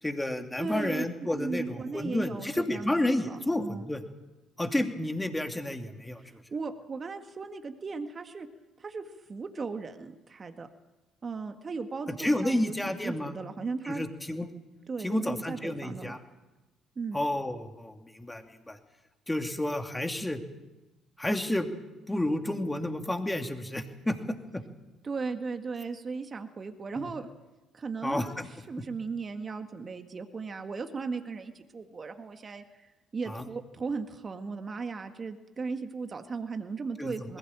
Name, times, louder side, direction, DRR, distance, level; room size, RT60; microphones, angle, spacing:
voice 1, 0.0-4.0 4.6-6.4 12.1-13.3 13.8-14.5 15.0-16.2 17.1-18.8 19.3-20.4 21.2-21.7 22.1-24.6 27.0-27.1 28.0-28.5 33.3-33.5 37.0-37.4, left 1 dB, 10° left, 5 dB, 2.7 m, -31 dB
voice 2, 0.6-3.9 6.2-8.5 8.8-10.7 11.2-14.0 14.9-16.2 17.0-17.2 25.0-27.3 27.7-28.4 28.7-37.4, right 4 dB, 35° right, 6 dB, 1.8 m, -37 dB
21.0 x 16.5 x 8.9 m, 1.1 s
hypercardioid pair, 55°, 0 cm